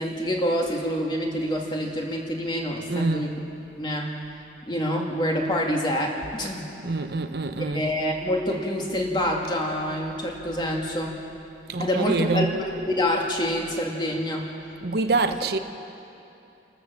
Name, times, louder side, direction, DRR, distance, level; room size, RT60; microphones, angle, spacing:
voice 1, 0.0-3.3 3.8-4.1 4.7-6.7 7.7-11.2 11.8-14.5, equal, 25° left, -1 dB, 2.4 m, -26 dB
voice 2, 2.9-3.3 6.8-7.9 11.7-12.5 14.8-15.6, right 3 dB, 55° right, 8 dB, 0.8 m, -25 dB
29.5 x 13.0 x 7.5 m, 2.8 s
head